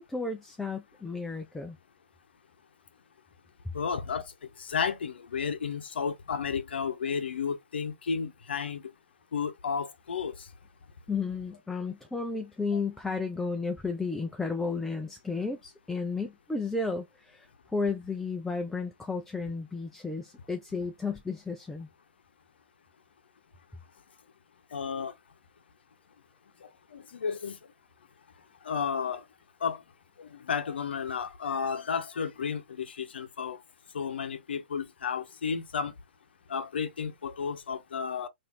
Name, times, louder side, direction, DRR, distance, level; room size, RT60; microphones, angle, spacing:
voice 1, 0.0-1.8 11.1-21.9, left 4 dB, 5° left, 0.4 m, -33 dB
voice 2, 3.7-4.2 4.6-8.8 9.3-10.5 24.7-25.1 26.9-27.6 28.6-29.2 29.6-29.8 30.2-33.6 33.9-35.9 36.5-38.3, left 6 dB, 70° left, 0.8 m, -32 dB
4.0 x 2.6 x 2.6 m
figure-of-eight pair, 120°, 6 cm